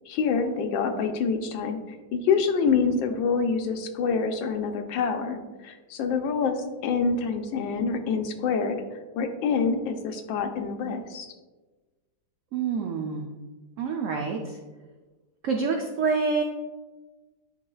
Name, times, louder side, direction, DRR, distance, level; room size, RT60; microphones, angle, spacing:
voice 1, 0.1-6.6 6.8-8.8 9.2-11.3, left 5 dB, 90° left, 6 dB, 1.4 m, -26 dB
voice 2, 12.5-13.3 13.8-14.6 15.4-16.4, right 5 dB, 85° right, 2 dB, 0.7 m, -27 dB
9.5 x 4.9 x 2.3 m, 1.2 s
omnidirectional pair, 2.0 m